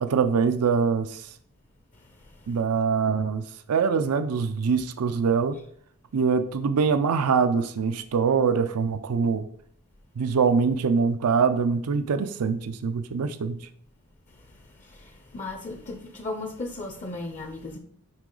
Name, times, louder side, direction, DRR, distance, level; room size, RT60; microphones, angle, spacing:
voice 1, 0.0-1.3 2.5-5.6 6.1-9.5 10.2-13.6, right 5 dB, 90° right, 0.5 m, -24 dB
voice 2, 15.3-17.8, left 2 dB, 35° left, 0.6 m, -35 dB
9.6 x 3.7 x 3.8 m
head